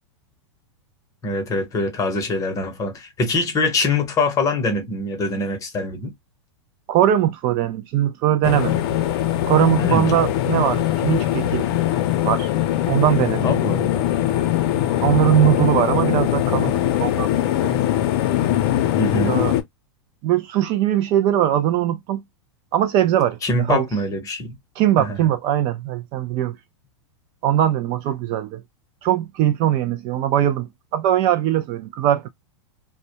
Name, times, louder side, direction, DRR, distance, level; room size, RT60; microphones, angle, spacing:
voice 1, 1.2-6.1 9.8-10.1 13.4-14.0 19.0-19.4 23.4-24.5 25.0-25.2, left 2 dB, 20° left, 0.8 m, -24 dB
voice 2, 6.9-8.8 9.5-11.7 12.2-12.5 12.9-13.5 15.0-17.8 19.3-19.5 20.2-22.2 22.7-23.9 24.8-26.6 27.4-28.6 29.0-32.3, right 11 dB, 35° right, 0.3 m, -20 dB
sound 1, 8.4-19.6, left 12 dB, 55° left, 0.6 m, -21 dB
2.2 x 2.1 x 2.7 m
supercardioid pair, 140°, 15 cm